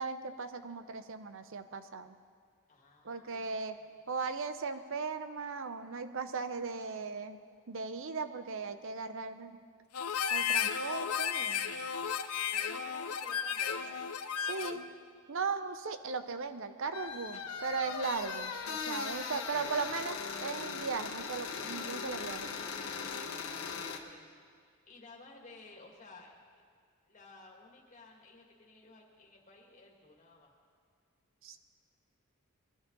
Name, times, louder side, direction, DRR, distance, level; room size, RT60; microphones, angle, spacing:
voice 1, 0.0-2.1 3.0-3.8 4.1-7.4 7.7-9.6 10.3-11.7 14.5-14.8 15.3-22.5 31.4-31.6, right 4 dB, 60° right, 10 dB, 0.8 m, -37 dB
voice 2, 2.7-4.0 11.6-12.2 12.5-14.0 14.4-14.8 19.0-19.6 23.5-26.6 27.1-30.5, left 3 dB, 35° left, -1 dB, 2.1 m, -55 dB
Harmonica, 9.9-14.9, left 8 dB, 90° left, 0.7 m, -34 dB
sound 1, 16.9-24.0, left 5 dB, 70° left, 1.3 m, -39 dB
21.5 x 12.0 x 4.0 m, 2.1 s
head